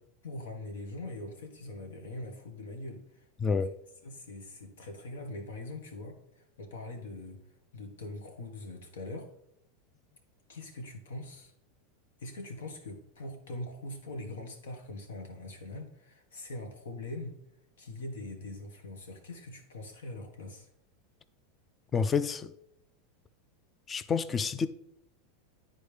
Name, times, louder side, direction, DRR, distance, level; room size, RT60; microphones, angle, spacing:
voice 1, 0.2-3.6 4.0-9.3 10.5-11.5 12.2-17.4 17.8-20.7, left 2 dB, 85° left, 1.4 m, -42 dB
voice 2, 21.9-22.5 23.9-24.7, left 5 dB, 20° left, 0.4 m, -28 dB
10.0 x 4.2 x 3.4 m
supercardioid pair, 120°, 0 cm